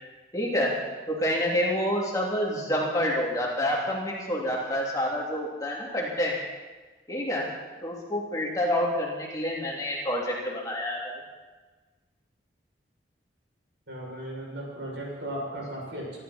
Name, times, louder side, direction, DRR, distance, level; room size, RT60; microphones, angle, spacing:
voice 1, 0.3-0.8 1.1-6.4 7.1-7.5 7.8-11.2, equal, 20° left, -3 dB, 2.9 m, -28 dB
voice 2, 13.9-16.2, right 1 dB, 80° right, -3 dB, 6.9 m, -36 dB
24.5 x 12.0 x 4.4 m, 1.3 s
head